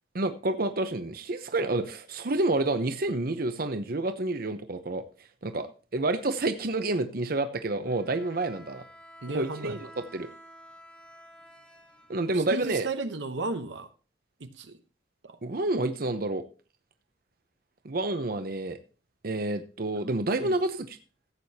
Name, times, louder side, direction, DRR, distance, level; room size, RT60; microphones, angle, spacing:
voice 1, 0.1-5.0 5.4-8.8 9.3-9.9 10.1-10.3 12.1-12.9 15.4-16.4 17.8-18.8 19.2-21.0, right 2 dB, 55° right, 9 dB, 0.8 m, -29 dB
Bowed string instrument, 7.8-12.9, equal, 5° left, 1.5 m, -51 dB
voice 2, 9.2-9.8 12.3-13.9 14.4-14.8 15.2-15.4 20.4-20.6, right 3 dB, 85° right, 9 dB, 1.0 m, -34 dB
15.0 x 8.4 x 2.8 m, 0.35 s
head